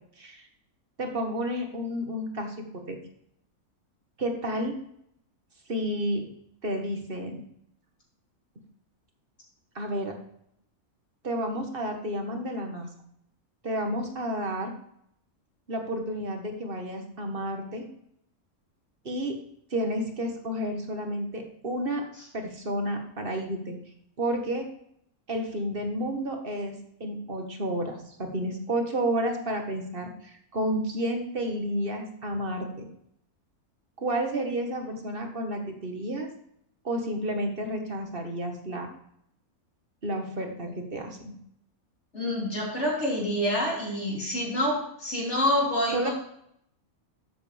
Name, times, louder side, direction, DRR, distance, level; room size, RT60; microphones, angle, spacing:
voice 1, 1.0-2.5 2.9-3.0 4.2-4.7 5.7-6.2 6.6-7.4 9.7-10.1 11.2-12.9 13.6-14.7 15.7-17.8 19.0-19.3 19.7-22.0 22.3-23.8 24.2-24.7 25.3-26.7 27.0-32.9 34.0-36.3 36.8-38.9 40.0-41.2 45.9-46.1, right 1 dB, 40° right, 3 dB, 1.7 m, -31 dB
voice 2, 42.1-46.1, left 1 dB, 50° left, -3 dB, 3.9 m, -27 dB
12.5 x 7.8 x 3.4 m, 0.71 s
omnidirectional pair, 1.5 m